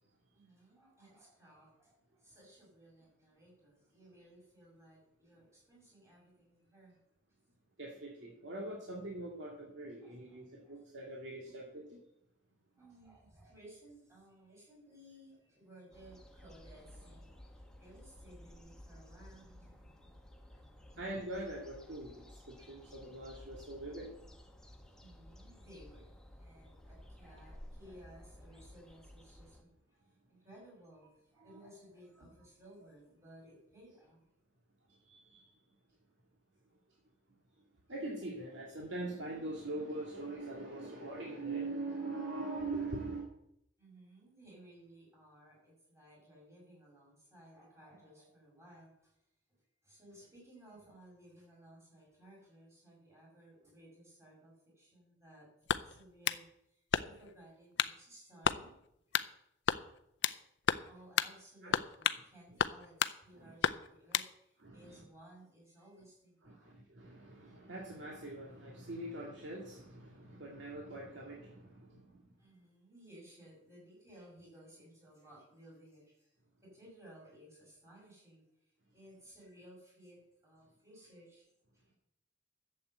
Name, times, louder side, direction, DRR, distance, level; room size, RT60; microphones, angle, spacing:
voice 1, 0.3-7.0 10.0-10.8 12.8-20.2 20.9-21.0 25.0-30.0 30.3-34.2 43.8-49.2 49.5-49.6 49.8-58.7 60.8-66.7 72.4-76.4 76.7-81.9, right 1 dB, 15° right, -3 dB, 6.5 m, -58 dB
voice 2, 7.8-12.0 21.0-24.1 31.5-31.6 35.0-35.5 37.9-43.3 61.6-61.8 63.4-63.5 64.6-65.0 66.4-72.3, right 2 dB, 75° right, -2 dB, 2.2 m, -43 dB
sound 1, 15.9-29.6, left 1 dB, 5° left, 1.2 m, -55 dB
sound 2, 55.7-56.4 56.9-57.3 57.8-58.0 58.4-58.6 59.1-59.3 59.7-60.4 60.7-60.9 61.2-61.3 61.7-62.2 62.6-63.2 63.6-64.3, left 8 dB, 65° left, 0.5 m, -32 dB
11.5 x 7.8 x 7.9 m, 0.78 s
head